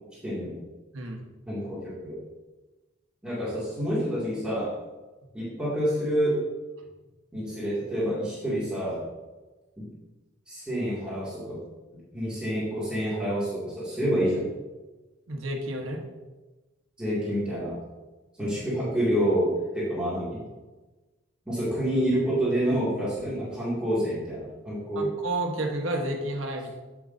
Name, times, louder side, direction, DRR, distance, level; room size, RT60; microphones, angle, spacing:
voice 1, 0.2-0.6 1.5-2.2 3.2-4.8 5.3-6.4 7.3-9.0 9.8-9.9 10.5-11.6 12.1-14.5 17.0-17.8 18.4-20.4 21.5-25.1, equal, 5° right, -10 dB, 2.3 m, -28 dB
voice 2, 0.9-1.2 15.3-16.0 25.0-26.7, right 1 dB, 80° right, 1 dB, 1.2 m, -31 dB
8.2 x 7.7 x 2.7 m, 1.2 s
head